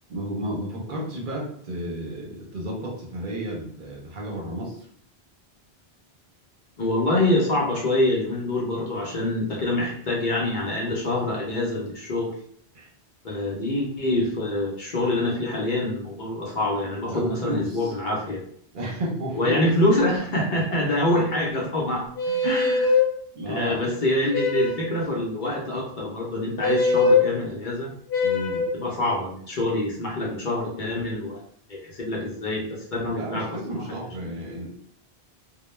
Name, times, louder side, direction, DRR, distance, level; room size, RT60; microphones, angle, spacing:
voice 1, 0.1-4.9 12.7-12.9 17.1-17.9 18.7-19.7 20.3-20.4 22.3-22.5 23.3-23.8 28.2-28.7 33.1-34.8, right 1 dB, 55° right, -2 dB, 0.7 m, -32 dB
voice 2, 6.8-12.3 13.2-18.4 19.3-22.0 22.4-23.0 23.5-27.9 28.7-31.4 31.7-33.8, left 1 dB, 55° left, -3 dB, 0.7 m, -25 dB
sound 1, 22.2-23.1 24.3-24.9 26.6-27.3 28.1-28.7, left 4 dB, 85° left, 0.9 m, -21 dB
2.2 x 2.1 x 3.0 m, 0.62 s
omnidirectional pair, 1.1 m